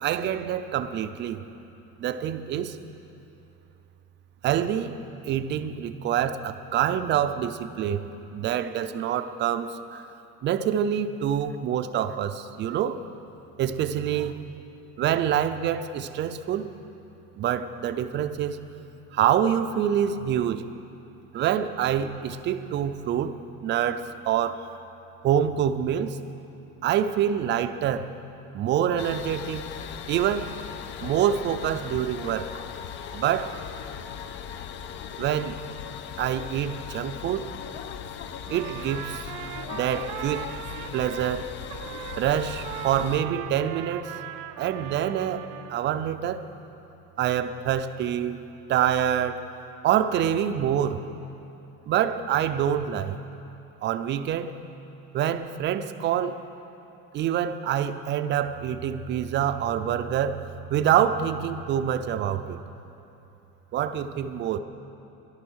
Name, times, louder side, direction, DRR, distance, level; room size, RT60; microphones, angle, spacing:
voice 1, 0.0-1.4 2.0-2.8 4.4-5.0 5.2-8.0 8.3-10.1 10.4-13.0 13.6-14.4 15.0-16.7 17.4-18.6 19.1-20.6 21.3-23.4 23.6-24.7 25.2-26.2 26.8-28.1 28.5-29.7 30.1-30.5 31.0-32.5 33.1-33.6 35.2-35.6 36.2-37.5 38.5-39.2 39.7-40.5 40.9-41.5 42.2-44.1 44.6-45.4 45.7-46.4 47.2-48.4 48.7-49.4 49.8-51.0 51.9-53.2 53.8-54.5 55.1-56.4 57.1-62.6 63.7-64.6, right 9 dB, 35° right, 10 dB, 0.5 m, -26 dB
Noisy Escalator, 29.0-43.2, left 8 dB, 35° left, 0.4 m, -38 dB
Trumpet, 38.4-41.4 41.7-45.8, right 12 dB, 85° right, 0.7 m, -39 dB
13.5 x 11.5 x 6.3 m, 2.9 s
cardioid pair, 160°, 32 cm